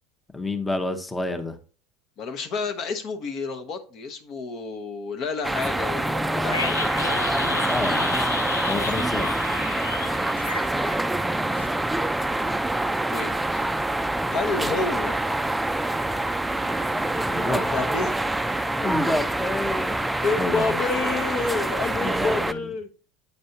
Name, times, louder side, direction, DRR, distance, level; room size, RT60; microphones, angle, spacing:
voice 1, 0.3-1.6 7.6-8.3 8.7-9.3 17.2-17.7 18.8-20.0 20.4-20.8 22.0-22.7, left 2 dB, 10° left, 0.8 m, -29 dB
voice 2, 2.2-7.1 13.1-13.6 14.3-15.2 17.5-18.1 20.2-22.9, left 4 dB, 50° left, 0.9 m, -29 dB
sound 1, 5.4-22.5, right 1 dB, 5° right, 0.4 m, -26 dB
sound 2, 6.5-11.3 11.6-11.7, left 4 dB, 90° left, 0.5 m, -32 dB
8.1 x 5.3 x 2.7 m
hypercardioid pair, 80°, 0 cm